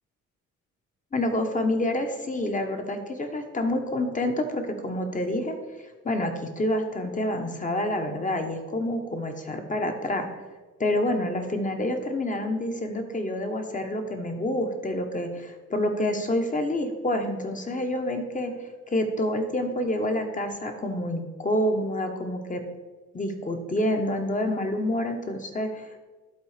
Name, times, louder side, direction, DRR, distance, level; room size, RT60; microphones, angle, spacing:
voice 1, 1.1-5.6 6.0-10.3 10.8-18.5 18.9-22.6 23.1-26.0, left 1 dB, 25° left, 5 dB, 1.2 m, -28 dB
11.5 x 3.9 x 5.1 m, 1.3 s
cardioid pair, 90°, 30 cm